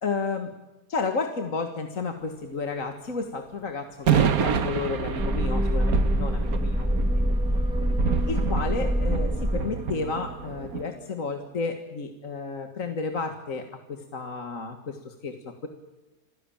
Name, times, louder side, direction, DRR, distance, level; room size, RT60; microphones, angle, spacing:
voice 1, 0.0-0.5 0.9-7.2 8.3-15.7, left 4 dB, 55° left, 5 dB, 2.1 m, -32 dB
sound 1, 4.1-10.8, right 7 dB, 65° right, 1.6 m, -28 dB
sound 2, 5.2-10.2 10.6-10.7, equal, 5° right, 1.0 m, -25 dB
28.0 x 16.5 x 8.8 m, 1.1 s
omnidirectional pair, 1.6 m